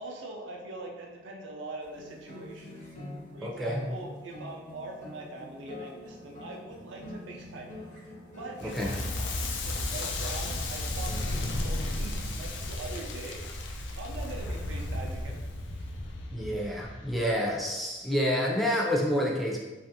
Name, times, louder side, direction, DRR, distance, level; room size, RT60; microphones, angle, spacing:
voice 1, 0.0-2.8 3.3-7.8 8.4-13.4 14.0-15.4 15.8-15.9, right 2 dB, 85° right, 0 dB, 0.4 m, -42 dB
sound 1, 1.8-11.6, left 1 dB, 45° left, 0.7 m, -45 dB
voice 2, 3.4-3.8 8.6-8.9 16.3-19.6, equal, ahead, -3 dB, 0.4 m, -28 dB
Crackle, 8.6-17.6, left 1 dB, 80° left, 0.4 m, -34 dB
2.9 x 2.4 x 2.7 m, 1.2 s
head